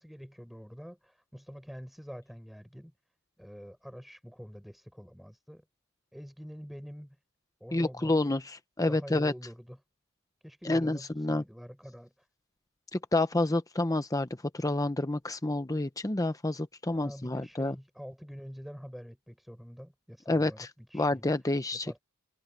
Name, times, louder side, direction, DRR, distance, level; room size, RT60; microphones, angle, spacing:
voice 1, 0.0-2.9 3.4-5.6 6.1-7.2 7.6-8.2 8.9-9.8 10.4-12.3 16.9-21.3 21.8-22.0, equal, ahead, 5.9 m, -46 dB
voice 2, 7.7-9.3 10.6-11.4 12.9-14.3 14.5-17.7 20.3-20.5 20.9-21.9, left 2 dB, 15° left, 0.9 m, -28 dB
head